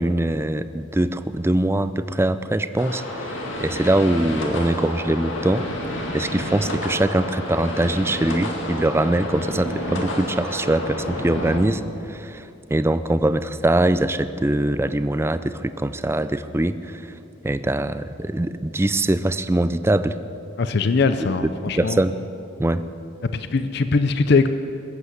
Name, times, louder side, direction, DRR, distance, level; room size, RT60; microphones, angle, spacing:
voice 1, 0.0-5.6 6.1-17.2 17.4-20.2 21.8-22.2 22.6-22.9, right 1 dB, 10° right, 12 dB, 0.4 m, -22 dB
sound 1, 2.8-11.6, left 1 dB, 70° left, 2.2 m, -30 dB
voice 2, 20.6-22.0 23.3-24.5, left 4 dB, 55° left, 11 dB, 0.5 m, -21 dB
20.5 x 8.3 x 7.9 m, 2.7 s
head